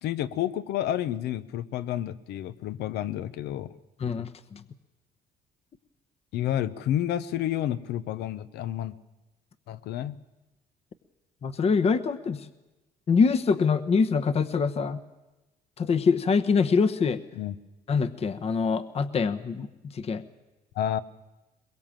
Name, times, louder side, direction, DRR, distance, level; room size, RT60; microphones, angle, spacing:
voice 1, 0.0-3.7 6.3-9.0 9.7-10.1 17.3-17.5 20.7-21.0, left 11 dB, 80° left, 15 dB, 1.0 m, -30 dB
voice 2, 4.0-4.6 11.4-12.5 13.1-15.0 15.8-17.2 17.9-20.2, left 5 dB, 35° left, 11 dB, 1.0 m, -24 dB
22.5 x 22.0 x 7.5 m, 1.0 s
cardioid pair, 110°, 17 cm